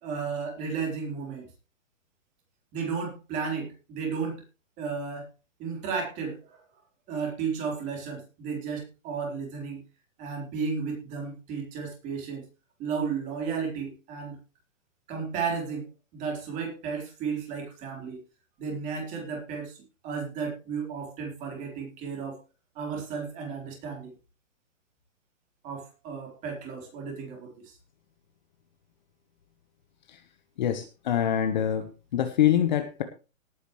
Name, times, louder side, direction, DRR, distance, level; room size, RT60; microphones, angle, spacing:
voice 1, 0.0-1.5 2.7-4.4 4.8-5.3 5.6-6.6 7.1-9.8 10.2-12.5 12.8-14.4 15.1-18.2 18.6-22.4 22.7-24.1 25.6-27.8, right 5 dB, 20° right, 1 dB, 4.1 m, -33 dB
voice 2, 30.6-33.0, left 10 dB, 35° left, 8 dB, 1.2 m, -25 dB
18.5 x 9.4 x 3.2 m, 0.31 s
hypercardioid pair, 170°, 41 cm